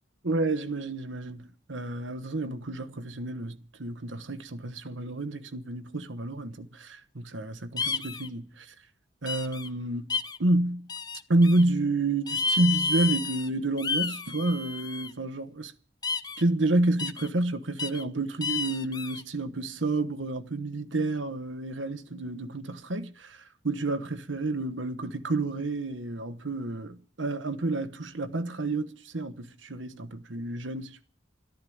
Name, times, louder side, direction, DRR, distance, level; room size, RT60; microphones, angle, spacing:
voice 1, 0.2-8.7 9.2-10.9 11.3-15.7 16.4-31.0, right 2 dB, 85° right, 1.2 m, -29 dB
sound 1, 7.8-8.3 9.3-9.7 10.1-10.4 10.9-11.6 12.3-13.5 13.8-15.1 16.0-16.4 17.0-17.3 17.8-18.0 18.4-19.2, left 4 dB, 20° left, 0.7 m, -31 dB
13.5 x 10.5 x 8.6 m
head